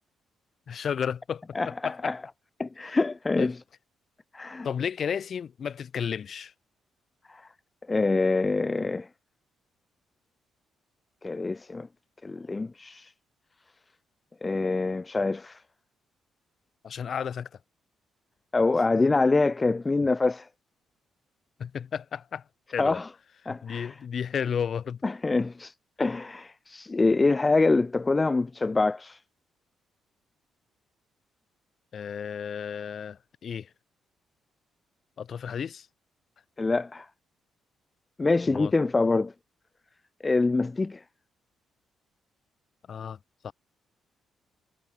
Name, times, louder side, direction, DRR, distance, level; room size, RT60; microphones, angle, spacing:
voice 1, 0.7-2.1 3.4-3.5 4.6-6.5 16.8-17.5 21.6-22.4 22.7-23.0 23.4-25.0 31.9-33.7 35.2-35.9 38.5-38.7 42.9-43.2 43.4-43.5, left 7 dB, 55° left, 1.2 m, -33 dB
voice 2, 1.5-2.2 2.6-3.6 4.3-4.7 7.3-7.5 7.9-9.1 11.2-11.9 12.2-13.1 14.4-15.6 18.5-20.5 22.8-23.1 23.5-24.0 25.0-25.7 26.0-29.2 36.6-37.1 38.2-39.3 40.2-41.0, left 3 dB, 25° left, 0.4 m, -25 dB
cardioid pair, 90°, 0 cm